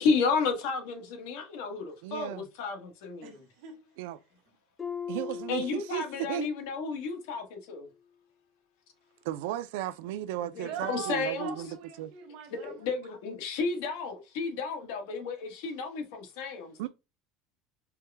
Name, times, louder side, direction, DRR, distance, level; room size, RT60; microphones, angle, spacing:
voice 1, 0.0-3.4 5.5-7.9 10.6-11.5 12.5-16.7, left 4 dB, 75° left, 1.2 m, -32 dB
voice 2, 2.0-2.5 4.0-4.2 5.1-6.5 9.2-11.7 12.0-12.1 16.8-16.9, right 13 dB, 90° right, 0.4 m, -35 dB
voice 3, 3.2-4.0 10.6-12.9, right 8 dB, 60° right, 0.8 m, -42 dB
Harp, 4.8-6.6 6.9-7.3 7.9-8.0, left 7 dB, 15° left, 0.5 m, -40 dB
4.5 x 2.2 x 3.3 m
cardioid pair, 175°, 0 cm